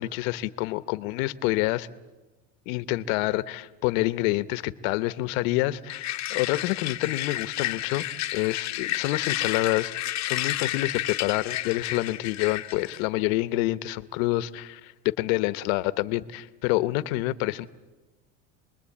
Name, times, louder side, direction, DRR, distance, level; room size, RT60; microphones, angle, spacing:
voice 1, 0.0-1.9 2.7-8.1 8.3-9.9 10.2-17.7, left 18 dB, 75° left, 15 dB, 1.2 m, -27 dB
sound 1, 5.9-13.0, left 15 dB, 40° left, 1.2 m, -31 dB
28.0 x 21.5 x 8.6 m, 1.1 s
supercardioid pair, 125°, 41 cm